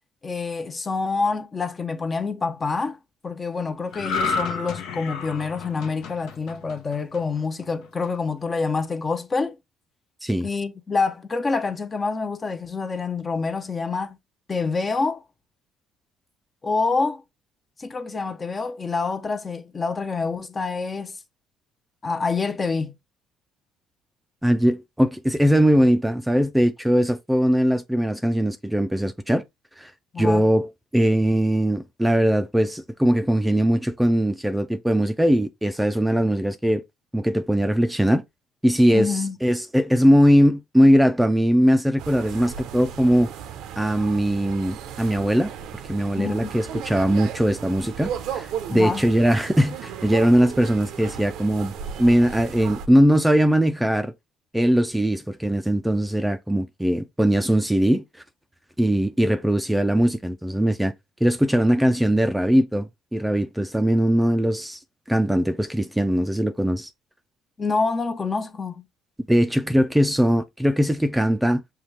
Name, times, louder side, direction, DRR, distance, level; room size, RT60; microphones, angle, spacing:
voice 1, 0.2-3.0 3.2-9.6 10.4-14.2 14.5-15.2 16.6-17.2 17.8-21.2 22.0-22.9 30.1-30.4 38.9-39.4 46.2-46.5 48.7-49.0 67.6-68.8, left 4 dB, 30° left, 0.7 m, -27 dB
sound 1, 3.9-7.4 7.8-8.1, left 4 dB, 70° left, 0.8 m, -30 dB
voice 2, 24.4-29.4 29.8-29.9 30.2-36.8 37.1-38.2 38.6-43.3 43.8-45.5 45.8-51.7 52.0-54.1 54.5-58.0 58.8-60.9 61.2-64.8 65.1-66.9 69.3-71.6, equal, 5° right, 0.4 m, -20 dB
sound 2, 42.0-52.9, right 8 dB, 75° right, 0.6 m, -35 dB
5.7 x 2.3 x 3.2 m
supercardioid pair, 75°, 0 cm